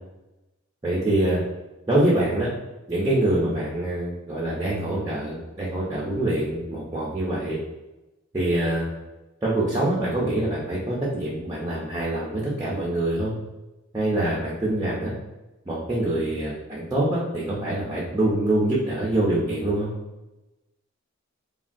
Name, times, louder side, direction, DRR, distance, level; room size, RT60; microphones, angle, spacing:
voice 1, 0.8-1.4 1.9-2.5 2.9-7.6 8.3-8.9 9.4-13.3 13.9-15.1 15.7-19.9, right 1 dB, 15° right, -7 dB, 0.5 m, -25 dB
3.2 x 2.2 x 2.5 m, 1.0 s
head